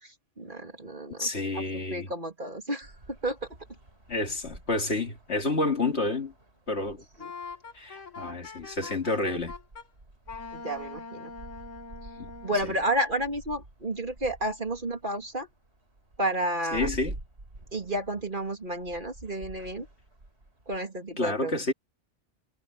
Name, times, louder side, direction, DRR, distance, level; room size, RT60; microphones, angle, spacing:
voice 1, 0.0-1.3 1.5-2.9 3.2-3.4 7.2-7.3 10.5-11.3 12.4-15.5 16.2-16.9 17.7-19.9 20.7-21.6, right 1 dB, 40° right, 3.3 m, -31 dB
voice 2, 1.2-2.1 4.1-6.3 6.7-7.0 7.7-9.5 12.2-12.3 12.6-12.7 16.7-17.1 21.2-21.7, left 2 dB, 60° left, 2.6 m, -29 dB
sound 1, 2.8-20.8, right 2 dB, 60° right, 4.5 m, -48 dB
Wind instrument woodwind instrument, 7.2-9.9 10.3-12.7, left 4 dB, 80° left, 2.3 m, -43 dB
omnidirectional pair, 1.3 m